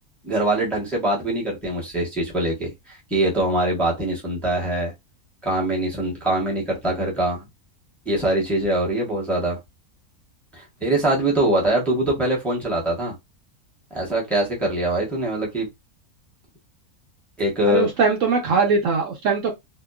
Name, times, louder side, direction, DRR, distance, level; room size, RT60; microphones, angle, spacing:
voice 1, 0.2-4.9 5.4-7.4 8.0-9.6 10.5-13.1 13.9-15.7 17.4-17.9, right 1 dB, ahead, 0.8 m, -23 dB
voice 2, 17.7-19.5, right 4 dB, 65° right, 0.9 m, -21 dB
2.7 x 2.3 x 2.3 m
omnidirectional pair, 1.6 m